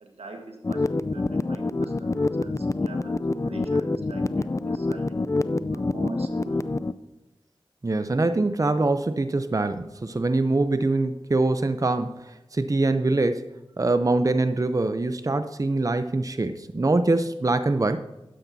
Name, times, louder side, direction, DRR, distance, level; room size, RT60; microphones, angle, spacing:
voice 1, 0.0-0.8 1.1-5.1 5.7-6.7, right 2 dB, 90° right, 3 dB, 1.5 m, -43 dB
sound 1, 0.6-6.9, left 2 dB, 30° left, 0.4 m, -26 dB
voice 2, 7.8-13.5 13.8-18.0, right 2 dB, 35° right, 10 dB, 0.6 m, -24 dB
12.5 x 10.0 x 2.7 m, 1.0 s
cardioid pair, 40°, 10 cm